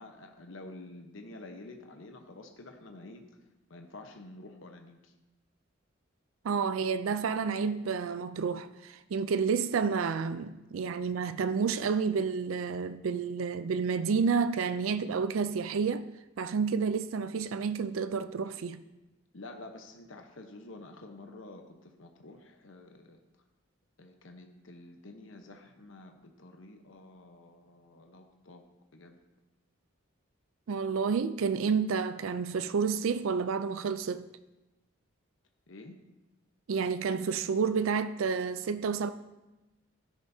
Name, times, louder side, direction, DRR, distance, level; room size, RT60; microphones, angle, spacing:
voice 1, 0.0-3.2 3.7-5.1 19.3-23.2 24.0-28.6 28.9-29.2 35.7-36.0, left 2 dB, 75° left, 1.0 m, -49 dB
voice 2, 6.4-16.1 16.4-18.8 30.7-34.3 36.7-39.1, right 5 dB, 90° right, 0.4 m, -30 dB
13.0 x 10.0 x 2.7 m
head